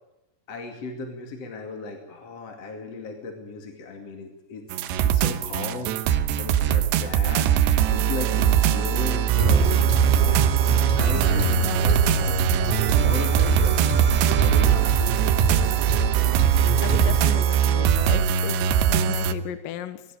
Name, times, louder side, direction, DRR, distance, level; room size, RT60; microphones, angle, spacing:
voice 1, 0.5-7.5 7.9-9.7 10.1-13.8 14.4-15.1 18.6-18.7, left 4 dB, 40° left, 5 dB, 2.9 m, -36 dB
sound 1, 4.7-19.3, right 9 dB, 90° right, 3.3 m, -21 dB
sound 2, 9.4-17.4, right 4 dB, 60° right, 5.0 m, -25 dB
voice 2, 11.1-11.8 16.8-20.0, left 10 dB, 70° left, 12 dB, 2.4 m, -35 dB
20.5 x 18.5 x 9.1 m, 0.91 s
omnidirectional pair, 4.9 m